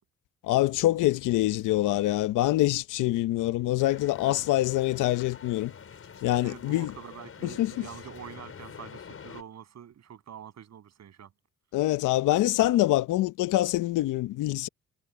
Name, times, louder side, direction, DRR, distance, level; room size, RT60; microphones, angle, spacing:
voice 1, 0.4-5.7 6.2-7.0 7.4-7.9 11.7-14.7, left 16 dB, 85° left, 0.8 m, -25 dB
sound 1, 3.8-9.4, left 7 dB, 50° left, 5.3 m, -46 dB
voice 2, 6.4-11.3, right 9 dB, 60° right, 7.8 m, -45 dB
cardioid pair, 90°, 30 cm